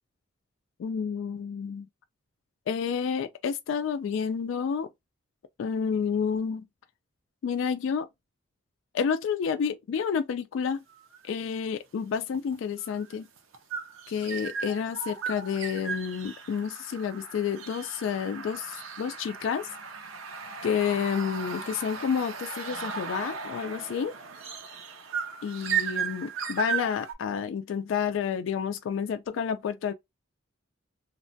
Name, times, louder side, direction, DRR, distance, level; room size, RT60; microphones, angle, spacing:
voice 1, 0.8-1.9 2.7-4.9 5.6-6.7 7.4-8.1 8.9-10.8 11.2-13.3 14.1-19.7 20.6-24.1 25.4-29.9, left 7 dB, 70° left, 0.3 m, -30 dB
sound 1, 10.9-11.2 12.3-27.1, right 6 dB, 80° right, 0.6 m, -36 dB
2.8 x 2.2 x 2.6 m
head